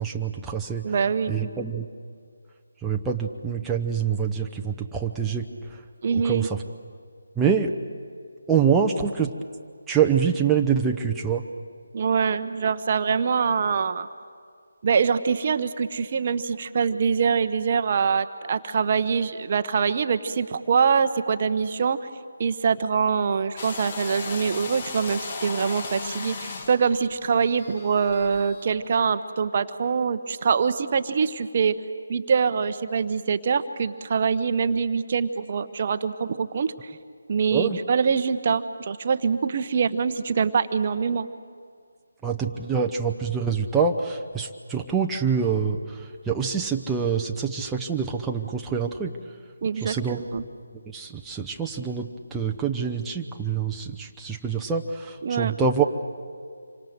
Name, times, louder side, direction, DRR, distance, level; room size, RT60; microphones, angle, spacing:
voice 1, 0.0-0.8 1.3-1.9 2.8-5.8 6.2-6.6 7.4-7.7 8.5-9.3 9.9-11.4 37.5-37.8 42.2-49.1 49.8-50.2 50.9-55.8, right 6 dB, 5° right, 0 dB, 0.8 m, -25 dB
voice 2, 0.8-1.3 6.0-6.5 11.9-14.1 14.8-22.1 22.4-31.8 32.1-36.9 37.3-41.3 49.6-50.4 55.2-55.6, right 6 dB, 40° right, 10 dB, 0.9 m, -24 dB
sound 1, 23.6-28.7, left 4 dB, 30° left, 1.6 m, -36 dB
27.0 x 25.0 x 7.9 m, 2.1 s
figure-of-eight pair, 155°, 0 cm